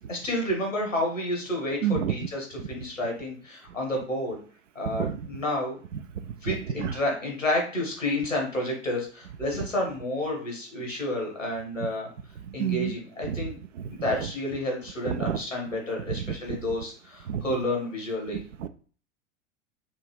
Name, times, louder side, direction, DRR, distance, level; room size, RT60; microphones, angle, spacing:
voice 1, 0.1-4.4 4.8-5.8 6.4-12.1 12.5-13.6 13.9-18.4, left 1 dB, 90° left, 0 dB, 1.8 m, -30 dB
voice 2, 1.8-2.2 4.9-5.1 6.5-6.9 12.6-12.9 13.3-13.4 15.1-15.4 17.3-17.4 18.6-18.7, right 9 dB, 75° right, 11 dB, 0.5 m, -28 dB
5.3 x 2.5 x 3.3 m, 0.42 s
figure-of-eight pair, 90°, 37 cm